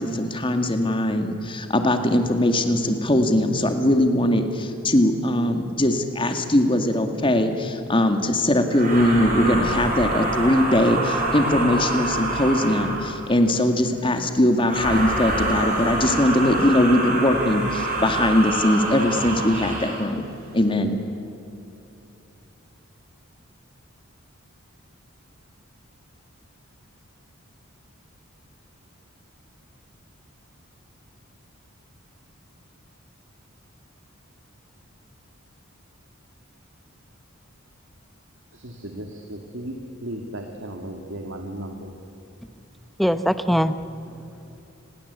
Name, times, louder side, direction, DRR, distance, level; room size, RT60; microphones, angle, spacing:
voice 1, 0.0-20.2 20.5-21.0, left 1 dB, 25° left, 6 dB, 2.2 m, -21 dB
sound 1, 8.7-13.2 14.6-20.1, right 2 dB, 40° right, 6.9 m, -26 dB
voice 2, 38.6-39.7 40.0-41.9, right 1 dB, 60° right, 3 dB, 2.3 m, -35 dB
voice 3, 43.0-44.6, equal, ahead, 11 dB, 0.8 m, -24 dB
29.5 x 21.5 x 8.3 m, 2.9 s
head